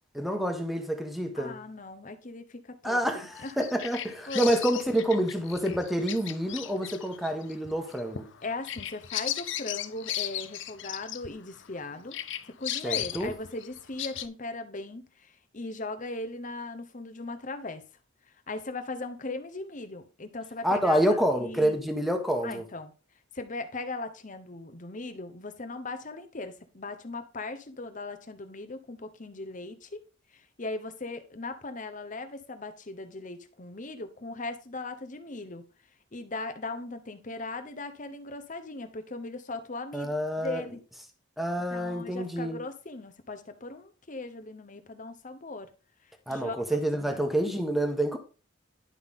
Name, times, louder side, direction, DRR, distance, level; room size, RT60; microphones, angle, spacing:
voice 1, 0.1-1.6 2.8-8.3 12.8-13.3 20.6-22.6 39.9-40.6 41.4-42.6 46.3-48.2, right 1 dB, ahead, 1.2 m, -28 dB
voice 2, 1.4-3.5 4.3-4.5 8.4-12.2 12.5-17.8 18.5-21.8 22.4-22.9 23.3-30.0 30.3-35.6 36.1-40.8 41.7-45.7 46.3-46.8 47.1-47.3, left 2 dB, 40° left, 0.9 m, -39 dB
Bird vocalization bird call bird song, 3.4-11.8 12.1-14.3, left 12 dB, 60° left, 0.6 m, -36 dB
11.0 x 5.7 x 3.7 m
head